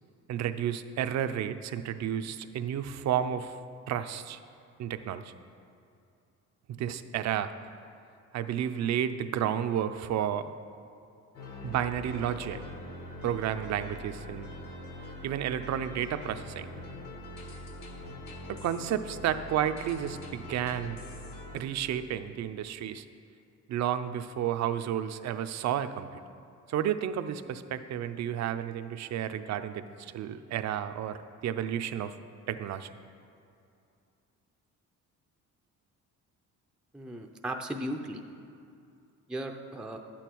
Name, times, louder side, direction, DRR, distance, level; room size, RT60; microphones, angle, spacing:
voice 1, 0.3-3.6 3.9-4.4 4.8-5.3 6.8-7.5 8.3-10.5 11.6-12.6 13.2-14.5 15.2-16.7 18.5-21.0 21.5-23.0 23.7-26.1 26.7-32.1 32.5-32.9, right 10 dB, 60° right, 10 dB, 0.6 m, -31 dB
sound 1, 11.3-21.6, left 1 dB, 75° left, 2.0 m, -43 dB
voice 2, 36.9-38.2 39.3-40.0, right 1 dB, 5° right, 3 dB, 0.5 m, -36 dB
11.5 x 8.8 x 4.6 m, 2.5 s
cardioid pair, 125°, 31 cm